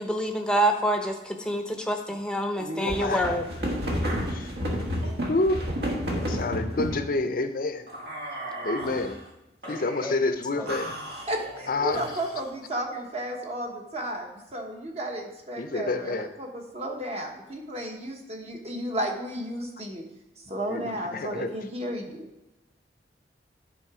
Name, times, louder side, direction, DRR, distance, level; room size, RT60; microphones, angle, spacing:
voice 1, 0.0-3.5 9.6-10.1 10.6-10.7, right 1 dB, 5° left, 3 dB, 0.7 m, -27 dB
Falling Down Wooden Stairs With Male Voice, 2.6-7.0 7.9-9.2 9.6-10.2 10.7-12.5, equal, 60° right, 1.4 m, -32 dB
voice 2, 2.8-3.3 4.3-4.5 5.3-5.7 6.1-7.9 8.6-9.2 9.7-10.9 11.7-12.2 14.0-14.1 15.6-16.3 20.7-21.5, left 2 dB, 50° left, 9 dB, 0.6 m, -28 dB
voice 3, 11.3-20.0 20.5-22.3, right 1 dB, 35° right, 1 dB, 1.1 m, -33 dB
10.5 x 3.8 x 4.9 m, 0.98 s
head